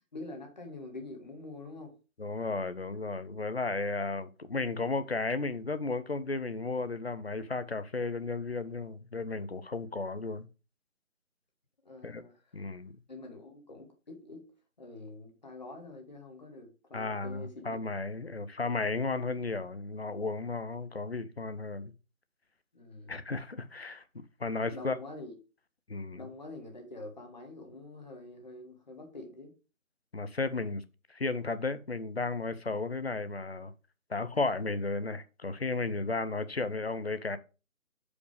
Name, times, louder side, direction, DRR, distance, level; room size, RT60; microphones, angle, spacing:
voice 1, 0.1-1.9 11.8-12.4 13.1-14.5 14.8-17.8 22.7-23.2 24.7-25.4 26.1-29.5, left 2 dB, 30° left, 1.6 m, -46 dB
voice 2, 2.2-10.5 12.0-12.2 12.5-12.9 16.9-21.9 23.1-24.0 24.4-25.0 25.9-26.2 30.1-30.8 31.1-33.7 34.1-37.4, left 3 dB, 50° left, 0.7 m, -34 dB
9.1 x 5.1 x 3.4 m
figure-of-eight pair, 165°, 41 cm